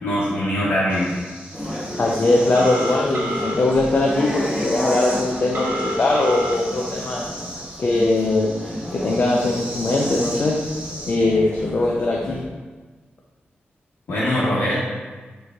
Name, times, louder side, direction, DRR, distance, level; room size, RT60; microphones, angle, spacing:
voice 1, 0.0-1.2 14.1-14.8, equal, 90° left, -10 dB, 1.1 m, -22 dB
sound 1, 0.9-11.1, equal, 30° right, 1.4 m, -37 dB
sound 2, 1.5-12.5, equal, 10° left, 0.9 m, -32 dB
voice 2, 2.0-7.3 7.8-8.5 8.9-10.6 11.0-12.4, left 2 dB, 50° left, -1 dB, 0.5 m, -20 dB
Telephone, 2.5-3.6 5.5-6.6, equal, 65° right, 0.8 m, -27 dB
6.7 x 3.2 x 2.3 m, 1.3 s
wide cardioid pair, 110°, 4 cm